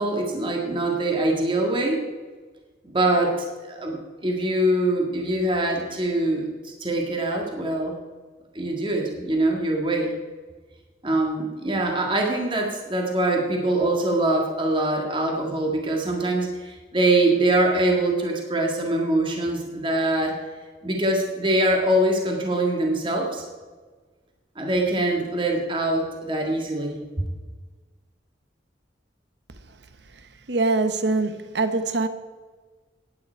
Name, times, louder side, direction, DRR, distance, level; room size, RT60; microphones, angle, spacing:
voice 1, 0.0-2.0 2.8-8.0 8.6-10.1 11.0-20.4 20.8-23.4 24.6-27.3, right 1 dB, 25° right, 1.8 m, -23 dB
voice 2, 30.5-32.1, right 3 dB, 70° right, 1.0 m, -23 dB
17.0 x 9.4 x 4.5 m
head